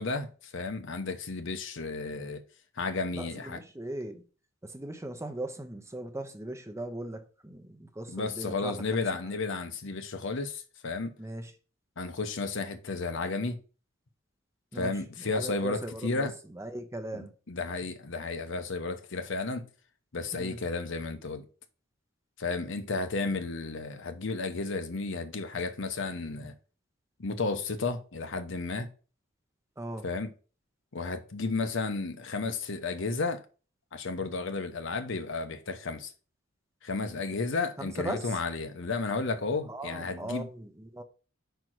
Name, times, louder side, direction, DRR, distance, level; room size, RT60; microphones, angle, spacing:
voice 1, 0.0-2.4 2.8-3.6 8.1-11.1 12.0-13.6 14.7-16.3 17.1-19.7 20.1-21.4 22.4-26.5 27.2-28.9 30.0-30.3 30.9-33.4 33.9-36.1 36.8-40.5, left 3 dB, 65° left, 0.9 m, -33 dB
voice 2, 3.1-4.2 4.6-9.0 11.2-11.5 14.7-17.3 20.3-20.6 29.8-30.1 37.8-38.4 39.6-41.0, right 1 dB, 15° right, 0.8 m, -39 dB
5.2 x 4.5 x 6.1 m
head